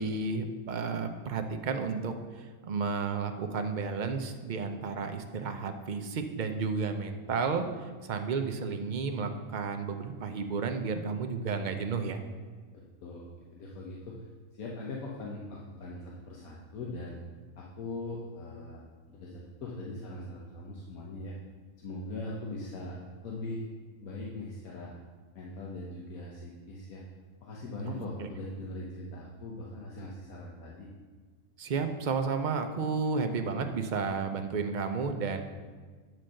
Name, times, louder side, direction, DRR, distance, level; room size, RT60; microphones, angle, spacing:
voice 1, 0.0-12.2 27.9-28.3 31.6-35.4, right 4 dB, 50° right, 6 dB, 0.6 m, -32 dB
voice 2, 12.7-13.3 13.5-14.1 14.5-17.2 17.6-18.8 19.1-21.3 21.8-23.0 23.2-23.7 24.0-24.9 25.3-27.0 27.4-30.9, left 2 dB, 80° left, -3 dB, 1.4 m, -40 dB
9.3 x 4.4 x 6.3 m, 1.5 s
omnidirectional pair, 1.5 m